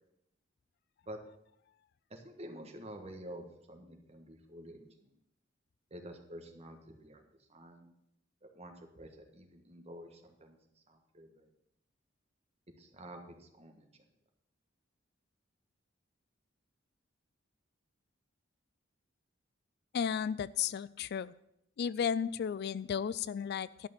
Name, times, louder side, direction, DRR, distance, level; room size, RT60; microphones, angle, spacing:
voice 1, 2.1-5.1 5.9-7.9 8.4-11.5 12.8-14.0, right 1 dB, 35° right, 4 dB, 1.5 m, -49 dB
voice 2, 19.9-21.3 21.8-23.9, left 7 dB, 55° left, 19 dB, 0.3 m, -34 dB
11.5 x 6.0 x 7.2 m, 0.78 s
head